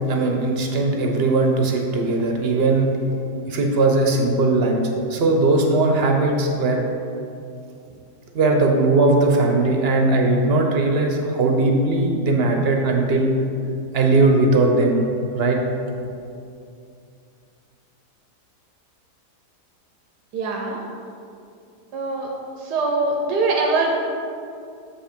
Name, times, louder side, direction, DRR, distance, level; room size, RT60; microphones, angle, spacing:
voice 1, 0.1-2.9 3.5-6.8 8.3-13.3 13.9-15.0 15.3-15.6, right 2 dB, 45° right, 2 dB, 0.9 m, -19 dB
voice 2, 20.3-20.8 21.9-22.3 22.6-23.9, right 3 dB, 85° right, -1 dB, 1.4 m, -22 dB
7.1 x 5.4 x 5.2 m, 2.5 s
omnidirectional pair, 1.8 m